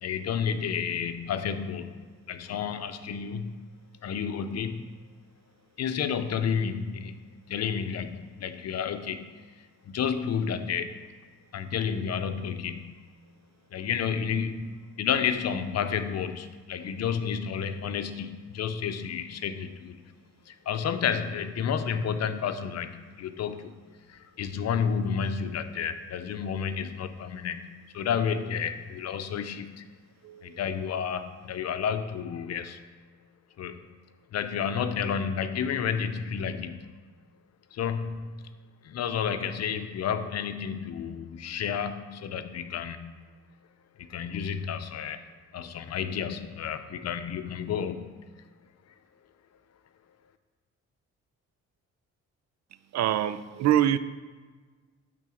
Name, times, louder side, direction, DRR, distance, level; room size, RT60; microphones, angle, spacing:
voice 1, 0.0-2.0 2.3-3.7 4.0-4.9 5.8-9.3 9.8-11.0 11.5-13.0 13.7-20.1 20.5-23.7 24.1-29.9 30.4-32.8 33.6-33.9 34.3-36.9 37.7-38.5 38.8-43.1 44.0-45.2 45.5-48.2, left 7 dB, 60° left, 0.7 m, -31 dB
voice 2, 30.2-30.6 52.9-54.0, right 11 dB, 65° right, 0.5 m, -25 dB
10.5 x 3.9 x 6.3 m
cardioid pair, 90°, 30 cm